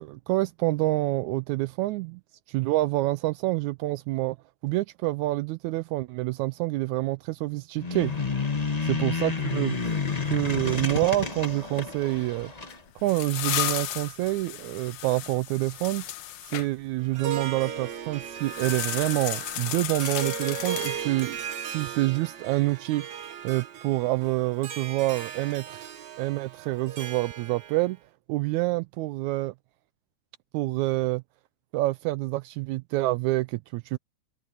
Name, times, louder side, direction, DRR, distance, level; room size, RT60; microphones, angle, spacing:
voice 1, 0.0-2.2 2.5-4.4 4.6-8.1 8.8-9.8 10.2-12.5 13.0-16.0 16.5-21.4 21.7-23.1 23.4-28.0 28.3-29.5 30.5-31.2 31.7-34.0, right 19 dB, 80° right, 1.8 m, -27 dB
sound 1, 7.8-12.8, left 5 dB, 30° left, 0.7 m, -30 dB
sound 2, 12.7-16.7 18.4-21.3, left 13 dB, 80° left, 2.5 m, -34 dB
Harp, 17.0-27.9, right 8 dB, 55° right, 1.2 m, -37 dB
omnidirectional pair, 3.5 m